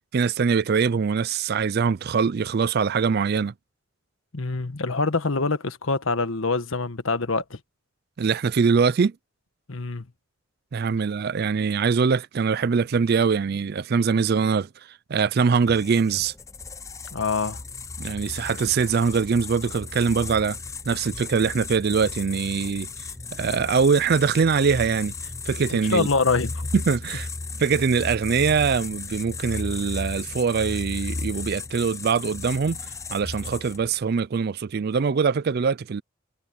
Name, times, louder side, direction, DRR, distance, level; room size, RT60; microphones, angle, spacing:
voice 1, 0.1-3.5 8.2-9.1 10.7-14.7 15.1-16.3 18.0-20.6 20.9-22.9 23.3-25.1 25.5-26.1 26.7-27.3 27.6-32.8 33.1-36.0, right 5 dB, 50° right, 0.4 m, -23 dB
voice 2, 4.3-7.6 9.7-10.0 17.1-17.6 25.9-26.7, left 3 dB, 75° left, 1.3 m, -25 dB
sound 1, 15.6-34.0, left 3 dB, 15° left, 0.5 m, -35 dB
head